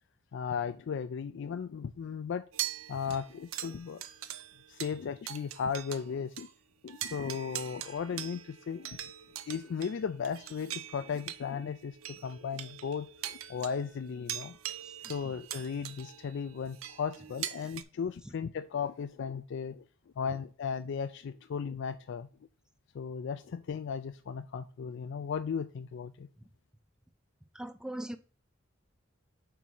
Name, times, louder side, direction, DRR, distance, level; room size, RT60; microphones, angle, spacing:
voice 1, 0.3-2.4 2.9-4.0 4.7-6.5 6.8-9.0 9.5-12.0 12.2-14.6 15.1-19.8 20.2-22.3 22.9-26.3, left 6 dB, 60° left, 10 dB, 0.3 m, -36 dB
sound 1, 2.5-6.1 6.4-6.5 6.9-17.8, right 12 dB, 80° right, 0.5 m, -42 dB
voice 2, 27.5-28.2, right 1 dB, 5° right, 8 dB, 0.5 m, -41 dB
5.0 x 4.6 x 5.4 m, 0.40 s
head